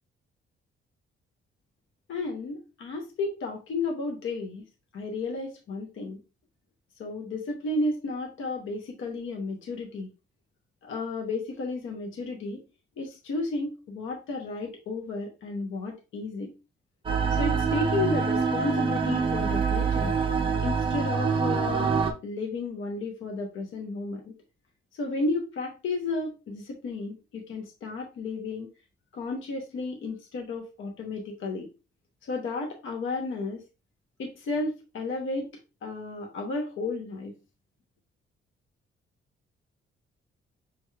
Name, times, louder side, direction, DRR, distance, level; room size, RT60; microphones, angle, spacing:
voice 1, 2.1-4.6 4.9-6.2 7.0-10.1 10.8-12.6 13.0-16.5 17.3-20.2 20.6-22.0 22.2-24.3 24.9-28.7 29.1-31.7 32.2-33.6 34.2-35.5 35.8-37.3, left 3 dB, 70° left, 2 dB, 0.8 m, -33 dB
sound 1, 17.1-22.1, right 5 dB, 25° right, 0.5 m, -25 dB
6.0 x 3.1 x 2.2 m, 0.30 s
wide cardioid pair, 175°, 21 cm